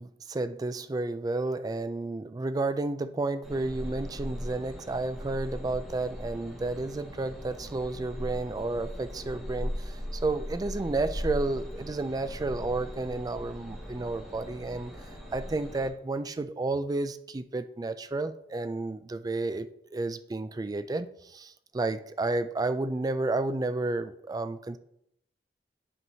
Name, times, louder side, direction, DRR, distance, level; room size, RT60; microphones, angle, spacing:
voice 1, 0.0-14.9 15.3-24.8, right 2 dB, 20° right, 12 dB, 0.3 m, -31 dB
sound 1, 3.4-15.9, equal, ahead, 1.7 m, -39 dB
11.0 x 4.6 x 2.7 m, 0.75 s
head